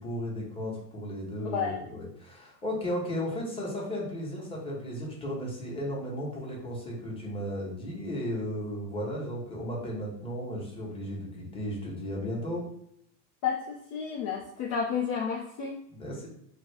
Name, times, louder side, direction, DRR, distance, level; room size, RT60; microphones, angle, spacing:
voice 1, 0.0-12.6 15.9-16.3, equal, 10° left, -3 dB, 0.9 m, -35 dB
voice 2, 13.4-15.8, left 6 dB, 45° left, 1 dB, 0.5 m, -31 dB
2.5 x 2.3 x 3.2 m, 0.73 s
hypercardioid pair, 100°, 48 cm